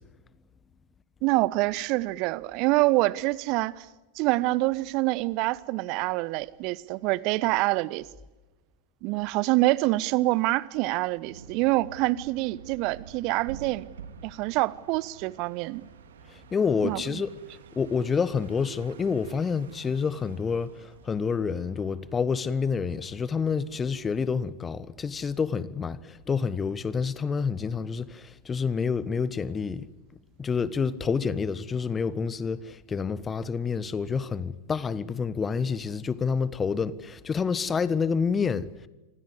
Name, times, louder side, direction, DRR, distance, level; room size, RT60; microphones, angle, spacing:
voice 1, 1.2-3.9 4.1-8.1 9.0-13.9 14.2-15.9 16.8-17.2, right 20 dB, 40° right, 1.1 m, -26 dB
sound 1, 11.2-23.8, right 6 dB, 60° right, 3.1 m, -49 dB
voice 2, 16.5-17.3 17.7-29.9 30.4-38.7, left 5 dB, 20° left, 1.4 m, -28 dB
28.0 x 24.5 x 8.2 m
figure-of-eight pair, 90°, 0 cm